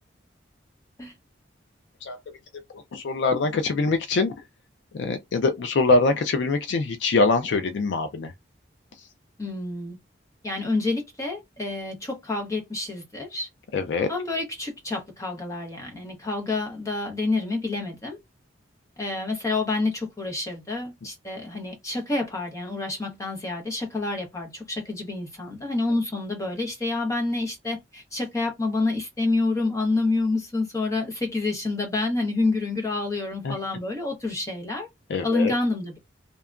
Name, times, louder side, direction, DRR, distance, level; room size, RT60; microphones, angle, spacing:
voice 1, 2.7-4.3 4.9-8.3 9.0-9.1 13.7-14.1 33.4-33.6 35.1-35.5, left 3 dB, 65° left, 0.4 m, -23 dB
voice 2, 9.4-10.0 10.4-13.5 14.1-18.2 19.0-34.9 35.2-36.0, left 3 dB, 15° left, 0.8 m, -28 dB
2.7 x 2.2 x 2.4 m
head